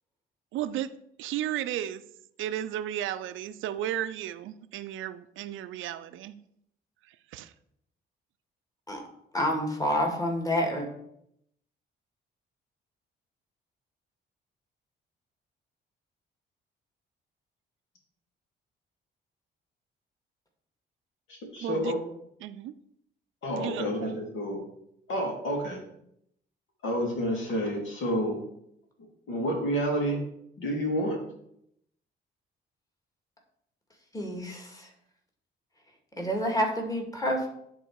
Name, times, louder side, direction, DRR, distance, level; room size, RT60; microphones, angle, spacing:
voice 1, 0.5-0.9 1.2-2.0 2.4-6.4 7.1-7.5 21.6-21.9 22.4-22.7 23.6-24.2, right 11 dB, 85° right, 12 dB, 0.5 m, -34 dB
voice 2, 9.3-10.9 34.1-34.9 36.2-37.5, equal, 15° left, 1 dB, 2.1 m, -28 dB
voice 3, 21.3-22.0 23.4-24.6 25.1-25.8 26.8-28.4 29.3-30.2 30.6-31.2, equal, 75° left, 0 dB, 2.7 m, -29 dB
10.0 x 4.0 x 4.7 m, 0.75 s
cardioid pair, 90°, 20 cm